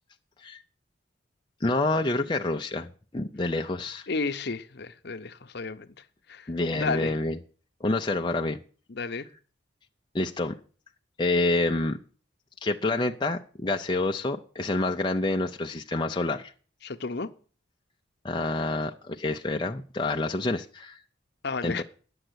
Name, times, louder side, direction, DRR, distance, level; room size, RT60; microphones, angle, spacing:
voice 1, 1.6-4.1 6.5-7.4 7.8-8.6 10.1-10.6 11.2-12.0 12.6-16.5 18.2-21.0 21.6-21.8, left 2 dB, 25° left, 0.5 m, -28 dB
voice 2, 4.1-5.9 6.3-7.1 8.9-9.3 16.8-17.3 21.4-21.8, left 4 dB, 55° left, 0.8 m, -32 dB
10.0 x 7.8 x 8.0 m
head